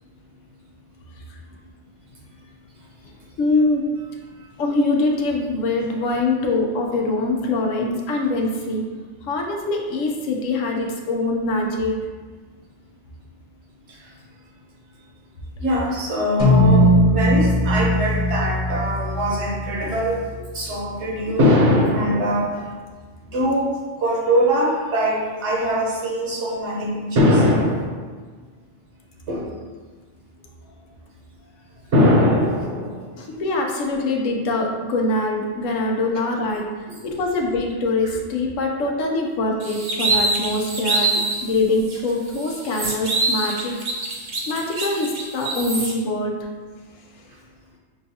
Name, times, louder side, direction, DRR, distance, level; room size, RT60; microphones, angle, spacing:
voice 1, 3.4-3.8 4.6-8.9 9.3-12.0 33.2-36.7 37.0-41.1 41.4-43.8 44.5-46.3, left 2 dB, 80° left, 1 dB, 1.0 m, -23 dB
voice 2, 15.6-20.2 20.5-22.5 23.3-23.7 24.0-27.9 29.3-29.4 31.9-33.0 36.9-37.0 43.4-43.5, equal, 65° right, -3 dB, 1.1 m, -21 dB
sound 1, 16.4-21.0, equal, 60° left, 1.3 m, -19 dB
sound 2, 39.6-41.4 41.9-42.0 42.3-45.9, right 2 dB, 45° right, 0.7 m, -24 dB
6.0 x 2.3 x 2.7 m, 1.4 s
omnidirectional pair, 1.3 m